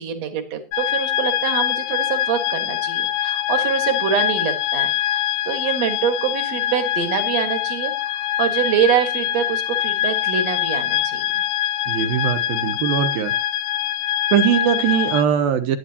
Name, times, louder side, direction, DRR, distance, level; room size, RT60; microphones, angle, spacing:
voice 1, 0.0-7.9 8.4-11.3, right 8 dB, 55° right, 8 dB, 1.9 m, -25 dB
sound 1, 0.7-15.2, left 12 dB, 80° left, 3.1 m, -24 dB
voice 2, 11.9-13.3 14.3-15.8, right 8 dB, 70° right, 9 dB, 2.4 m, -20 dB
18.5 x 10.5 x 2.8 m, 0.31 s
omnidirectional pair, 5.1 m